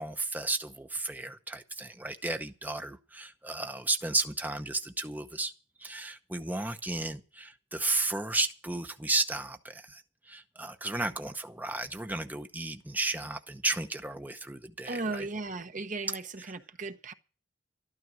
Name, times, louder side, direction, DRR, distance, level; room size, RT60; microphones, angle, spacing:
voice 1, 0.0-5.5 5.8-15.3, right 2 dB, 10° right, 0.8 m, -33 dB
voice 2, 14.9-17.1, right 3 dB, 45° right, 1.0 m, -36 dB
13.0 x 12.5 x 6.2 m
head